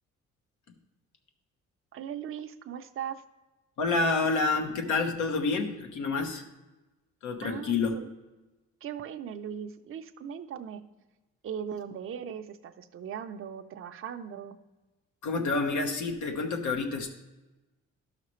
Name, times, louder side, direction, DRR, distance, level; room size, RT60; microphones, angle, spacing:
voice 1, 1.9-3.2 7.4-8.1 8.8-10.8 11.4-14.6, right 8 dB, 45° right, 6 dB, 0.6 m, -39 dB
voice 2, 3.8-6.4 7.2-8.0 15.2-17.1, left 3 dB, 75° left, 4 dB, 1.1 m, -28 dB
12.0 x 5.8 x 3.1 m, 1.1 s
cardioid pair, 90°, 30 cm